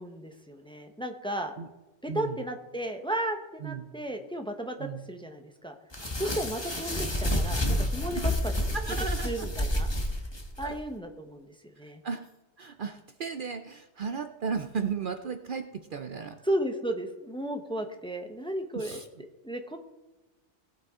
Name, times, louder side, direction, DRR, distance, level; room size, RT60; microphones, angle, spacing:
voice 1, 0.0-1.5 2.0-5.7 6.2-8.3 9.2-9.9 10.6-12.0 16.4-19.0 19.4-19.8, right 1 dB, 5° left, 4 dB, 1.0 m, -34 dB
voice 2, 2.1-2.4 3.6-3.9 4.8-5.1 8.1-8.3 8.7-9.7 10.6-10.8 11.8-12.3 12.6-16.4 18.7-19.1, right 6 dB, 55° right, 7 dB, 0.8 m, -35 dB
sound 1, 5.9-10.7, left 1 dB, 25° left, 1.5 m, -29 dB
18.5 x 8.3 x 3.7 m, 1.1 s
omnidirectional pair, 1.2 m